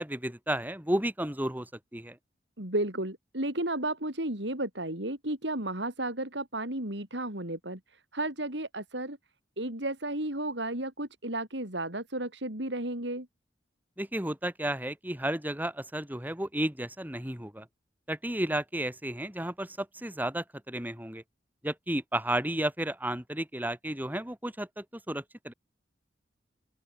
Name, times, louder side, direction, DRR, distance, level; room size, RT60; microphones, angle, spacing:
voice 1, 0.0-2.2 14.0-17.7 18.1-21.2 21.6-25.5, right 1 dB, 10° right, 3.3 m, -33 dB
voice 2, 2.6-9.2 9.6-13.3, right 1 dB, 65° right, 5.7 m, -33 dB
open air
head